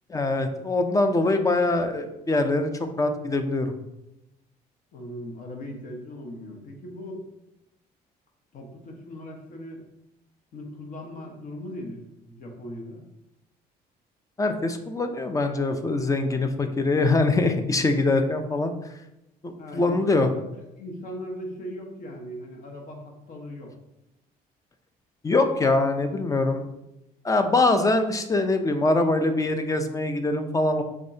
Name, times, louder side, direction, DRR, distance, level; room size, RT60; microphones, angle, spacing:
voice 1, 0.1-2.7 3.0-3.7 14.4-18.7 19.4-20.3 25.2-26.6 27.2-30.8, left 2 dB, 20° left, 7 dB, 0.5 m, -23 dB
voice 2, 4.9-7.2 8.5-9.8 10.5-13.0 19.6-20.0 20.5-23.7, equal, 50° left, 1 dB, 1.1 m, -39 dB
5.1 x 3.8 x 2.7 m, 0.88 s
cardioid pair, 110°, 17 cm